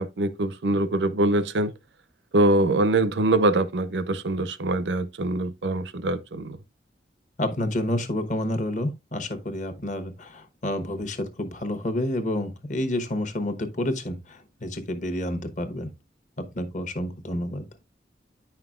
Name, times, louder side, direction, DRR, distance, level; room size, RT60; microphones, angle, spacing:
voice 1, 0.0-1.7 2.3-6.6, right 2 dB, 90° right, 0.6 m, -23 dB
voice 2, 7.4-15.9 16.5-17.7, left 1 dB, 45° left, 1.0 m, -29 dB
9.5 x 5.7 x 2.4 m
head